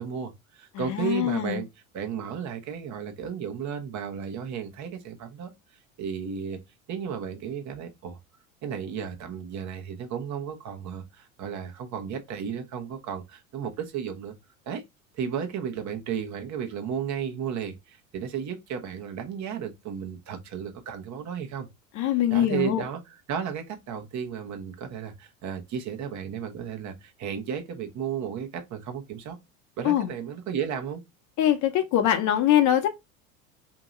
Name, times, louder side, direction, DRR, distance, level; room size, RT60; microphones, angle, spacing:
voice 1, 0.0-1.7 1.9-5.5 6.0-6.6 6.9-8.2 8.6-14.3 14.7-14.8 15.1-21.7 22.3-29.4 29.8-31.0, right 7 dB, 45° right, 1.0 m, -34 dB
voice 2, 0.7-1.6 21.9-22.8 29.8-30.1 31.4-32.9, left 11 dB, 45° left, 0.8 m, -23 dB
2.9 x 2.8 x 3.7 m
hypercardioid pair, 85°, 41 cm